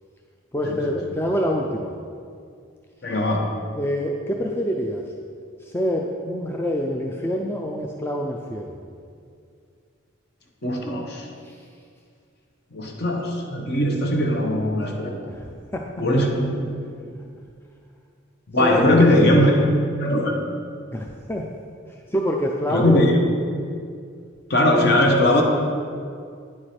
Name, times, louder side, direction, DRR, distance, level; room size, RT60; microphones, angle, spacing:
voice 1, 0.5-1.9 3.8-5.0 5.6-8.8 11.4-11.6 15.3-15.8 18.6-19.2 20.9-21.5 22.1-23.0, equal, 10° left, 0 dB, 0.3 m, -26 dB
voice 2, 3.0-3.4 10.6-11.3 12.7-15.3 16.0-16.7 17.0-17.1 18.5-20.4 22.7-23.2 24.5-25.4, left 1 dB, 50° left, 2 dB, 0.9 m, -20 dB
9.7 x 4.8 x 4.3 m, 2.3 s
head